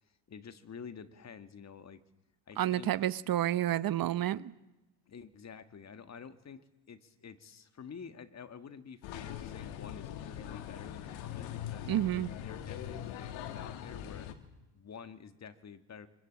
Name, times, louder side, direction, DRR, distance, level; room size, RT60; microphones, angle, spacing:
voice 1, 0.3-2.0 2.5-2.9 5.1-11.9 12.4-14.3 14.8-16.1, left 6 dB, 35° left, 11 dB, 1.8 m, -49 dB
voice 2, 2.6-4.5 11.9-12.3, right 12 dB, 50° right, 17 dB, 0.9 m, -30 dB
sound 1, 9.0-14.3, left 10 dB, 90° left, 2.3 m, -42 dB
25.0 x 23.0 x 8.6 m, 0.96 s
cardioid pair, 105°, 45 cm